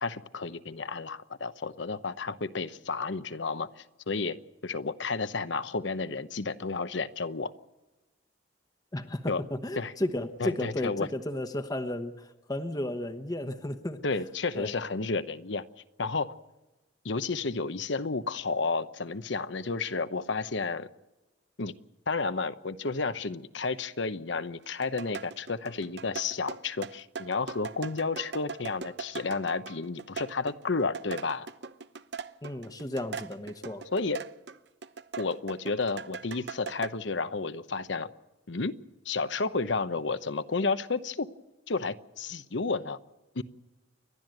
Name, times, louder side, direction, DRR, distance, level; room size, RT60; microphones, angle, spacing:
voice 1, 0.0-4.4 4.6-7.5 9.3-9.4 9.8-9.9 10.4-11.1 14.0-15.6 16.0-16.3 17.0-20.9 21.6-21.7 22.1-31.5 33.9-34.2 35.2-38.1 38.5-38.7 39.0-41.3 41.7-43.0 43.3-43.4, left 4 dB, 75° left, 12 dB, 0.9 m, -31 dB
voice 2, 8.9-14.0 14.5-14.8 32.4-33.9, left 1 dB, 20° left, 8 dB, 1.0 m, -33 dB
sound 1, 24.6-34.6 34.8-36.9, right 5 dB, 60° right, 0.8 m, -40 dB
29.5 x 12.5 x 7.8 m, 1.1 s
head